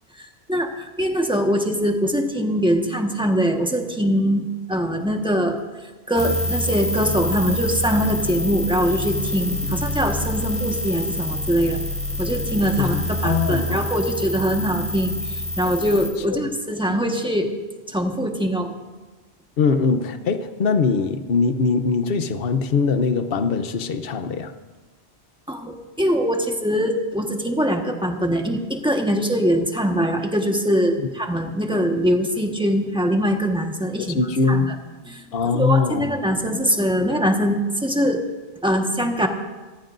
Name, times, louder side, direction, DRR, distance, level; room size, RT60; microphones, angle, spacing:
voice 1, 0.2-5.6 6.1-11.8 12.2-17.5 17.9-18.7 25.5-34.2 34.5-34.7 35.1-35.2 35.5-38.2 38.6-39.3, equal, 5° right, 2 dB, 1.4 m, -22 dB
sound 1, 6.2-16.1, left 1 dB, 35° left, 3.9 m, -27 dB
voice 2, 12.8-13.8 16.3-16.4 19.6-24.5 31.0-31.1 34.0-34.7 35.3-36.1, left 5 dB, 60° left, 9 dB, 1.0 m, -22 dB
26.5 x 14.5 x 2.6 m, 1.2 s
omnidirectional pair, 1.1 m